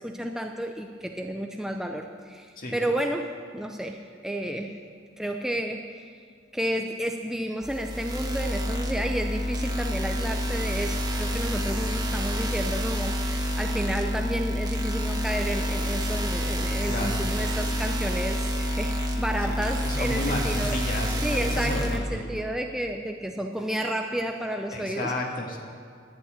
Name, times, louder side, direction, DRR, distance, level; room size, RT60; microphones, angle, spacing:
voice 1, 0.0-4.8 5.2-6.1 6.5-20.8 21.2-25.1, right 1 dB, ahead, 3 dB, 0.5 m, -31 dB
sound 1, 7.6-22.0, equal, 20° right, 1.3 m, -28 dB
voice 2, 16.9-17.2 19.4-19.6 19.8-22.2 24.7-25.6, left 1 dB, 45° left, 0 dB, 2.1 m, -32 dB
11.5 x 8.8 x 8.7 m, 2.2 s
head